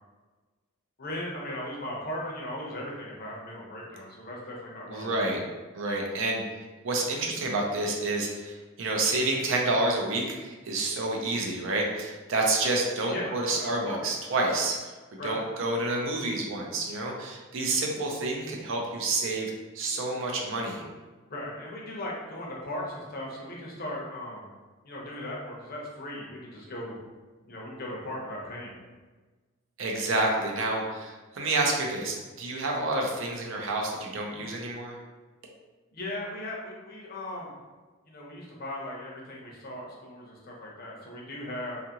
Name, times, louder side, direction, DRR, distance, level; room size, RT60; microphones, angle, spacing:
voice 1, 1.0-5.3 13.1-14.0 15.2-15.4 21.3-24.5 24.8-27.0 27.4-28.8 35.9-37.5 38.1-41.8, left 1 dB, 45° left, -3 dB, 0.6 m, -37 dB
voice 2, 4.9-5.4 5.7-6.4 6.8-20.9 29.8-35.0, right 2 dB, 65° right, -1 dB, 0.5 m, -29 dB
2.6 x 2.4 x 2.8 m, 1.3 s
head